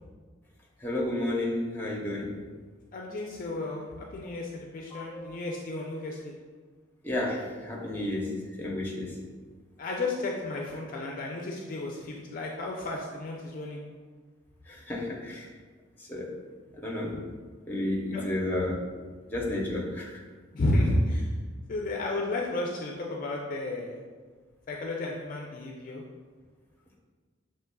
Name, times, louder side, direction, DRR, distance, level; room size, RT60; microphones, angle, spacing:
voice 1, 0.8-2.3 4.9-5.4 7.0-8.3 8.6-9.1 14.7-15.5 16.1-16.3 16.8-17.1 17.7-18.8 19.3-20.2, left 1 dB, 10° left, -3 dB, 0.7 m, -31 dB
voice 2, 2.9-6.3 9.8-13.8 18.1-18.2 20.5-21.3 21.7-24.0 24.7-26.0, left 2 dB, 40° left, -1 dB, 0.4 m, -32 dB
5.8 x 3.0 x 2.2 m, 1.4 s
head